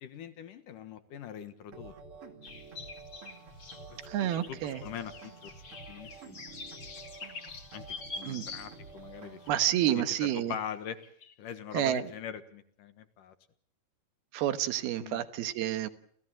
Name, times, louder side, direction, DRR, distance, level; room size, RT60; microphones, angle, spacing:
voice 1, 0.0-1.9 3.9-5.5 5.9-6.4 7.7-7.8 8.2-11.0 11.4-13.3 15.0-15.2, left 8 dB, 65° left, 10 dB, 2.7 m, -43 dB
sound 1, 1.7-9.7, right 4 dB, 40° right, 2.7 m, -49 dB
sound 2, 2.4-9.1 9.6-9.7 10.5-10.8 11.0-11.3, left 4 dB, 35° left, 2.7 m, -46 dB
voice 2, 4.1-4.8 8.3-8.4 9.5-10.5 11.7-12.0 14.3-15.9, right 12 dB, 80° right, 11 dB, 3.1 m, -29 dB
29.0 x 16.0 x 7.7 m, 0.66 s
omnidirectional pair, 4.4 m